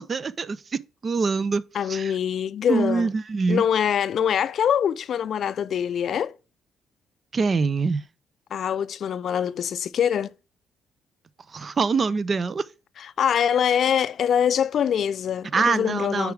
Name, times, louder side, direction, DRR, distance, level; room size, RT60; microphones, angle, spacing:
voice 1, 0.0-1.6 1.9-2.1 2.7-3.6 7.3-8.0 11.5-12.6 15.5-16.3, right 4 dB, 40° right, 0.4 m, -24 dB
voice 2, 1.7-3.1 3.5-6.3 8.5-10.3 13.0-16.3, left 8 dB, 60° left, 0.4 m, -24 dB
6.9 x 4.8 x 3.2 m
cardioid pair, 90°, 0 cm